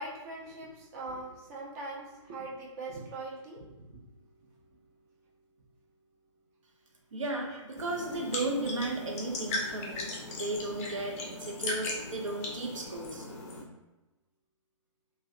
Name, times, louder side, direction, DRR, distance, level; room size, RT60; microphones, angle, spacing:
voice 1, 0.0-4.0 7.5-7.6, right 2 dB, 30° right, -3 dB, 0.5 m, -41 dB
voice 2, 7.1-13.3, right 2 dB, 75° right, 0 dB, 0.5 m, -35 dB
sound 1, 7.8-13.6, left 2 dB, 30° left, 0.4 m, -38 dB
2.3 x 2.1 x 2.5 m, 1.1 s
figure-of-eight pair, 135°, 17 cm